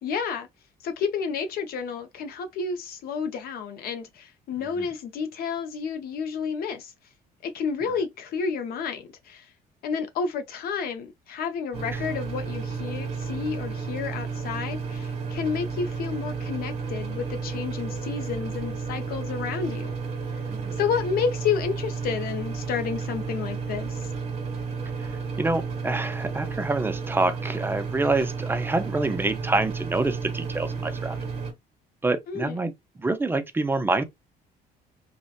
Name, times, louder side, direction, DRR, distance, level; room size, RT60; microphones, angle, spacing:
voice 1, 0.0-0.5 0.8-6.9 7.4-9.5 9.8-20.0 20.7-24.1 32.3-32.6, left 6 dB, 65° left, 0.4 m, -30 dB
sound 1, 11.7-31.5, right 5 dB, 40° right, 1.1 m, -32 dB
voice 2, 20.5-20.8 25.0-25.1 25.4-31.2 32.0-32.7 33.0-34.0, right 2 dB, 15° right, 0.3 m, -26 dB
2.7 x 2.1 x 2.2 m
cardioid pair, 110°, 17 cm